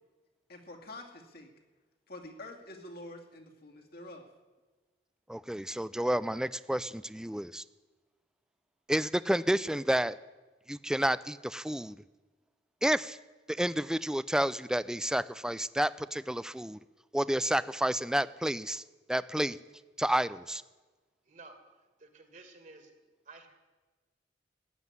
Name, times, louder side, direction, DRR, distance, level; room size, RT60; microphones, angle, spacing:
voice 1, 0.5-1.5 2.1-4.3, left 1 dB, 60° left, 2 dB, 2.6 m, -47 dB
voice 2, 5.3-7.6 8.9-10.2 10.7-12.0 12.8-13.2 13.5-16.8 17.1-18.8 19.1-19.6 20.0-20.6, right 1 dB, 5° right, 17 dB, 0.4 m, -30 dB
voice 3, 21.3-21.6 22.0-22.9 23.3-23.5, right 3 dB, 45° right, 7 dB, 2.3 m, -52 dB
15.0 x 9.2 x 9.8 m, 1.2 s
head